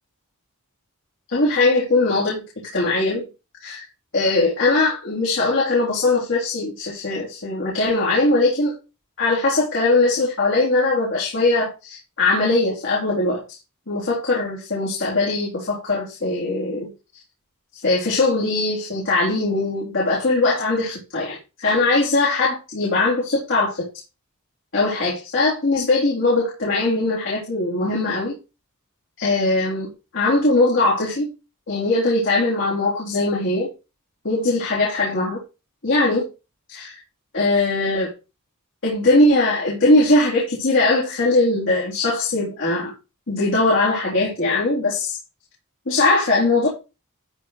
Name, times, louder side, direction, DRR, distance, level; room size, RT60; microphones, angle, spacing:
voice 1, 1.3-2.4 2.7-3.3 3.6-3.8 4.1-8.7 9.2-13.4 13.9-16.9 17.8-21.4 21.6-23.9 24.7-28.4 29.2-31.3 31.7-33.7 34.2-35.4 35.8-36.3 36.7-36.9 37.3-38.1 38.8-42.9 43.3-45.2 45.9-46.7, left 2 dB, 60° left, -6 dB, 3.6 m, -20 dB
12.5 x 4.6 x 4.1 m, 0.28 s
head